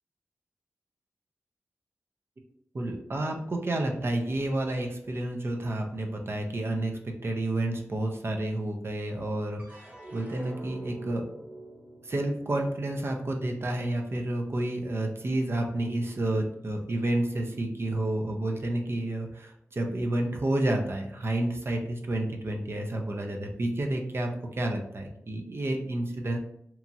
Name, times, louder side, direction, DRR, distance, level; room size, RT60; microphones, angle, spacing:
voice 1, 2.7-11.2 12.0-26.4, right 1 dB, 50° right, 2 dB, 0.5 m, -30 dB
sound 1, 9.6-16.0 16.5-17.2, right 1 dB, 30° right, 0.9 m, -48 dB
2.9 x 2.3 x 2.6 m, 0.74 s
cardioid pair, 55°, 5 cm